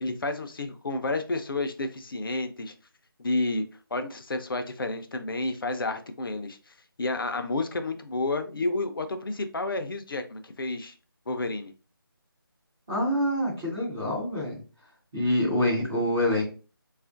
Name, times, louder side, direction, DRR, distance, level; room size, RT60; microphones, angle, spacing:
voice 1, 0.0-2.7 3.2-3.6 3.9-11.0 11.3-11.7, left 2 dB, 65° left, 0.5 m, -30 dB
voice 2, 12.9-14.6 15.1-16.4, left 1 dB, 5° right, 0.3 m, -26 dB
3.5 x 2.4 x 2.4 m
figure-of-eight pair, 160°, 12 cm